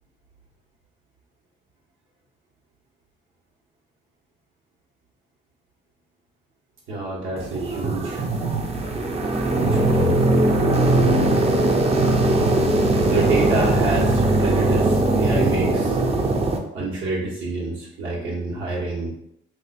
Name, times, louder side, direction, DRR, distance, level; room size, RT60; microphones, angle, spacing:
voice 1, 6.9-8.2 9.5-10.3 12.7-16.0 16.7-19.1, right 2 dB, 80° right, -5 dB, 1.4 m, -28 dB
sound 1, 7.4-16.6, right 2 dB, 30° right, 0.6 m, -20 dB
2.7 x 2.4 x 4.1 m, 0.76 s
cardioid pair, 90°, 20 cm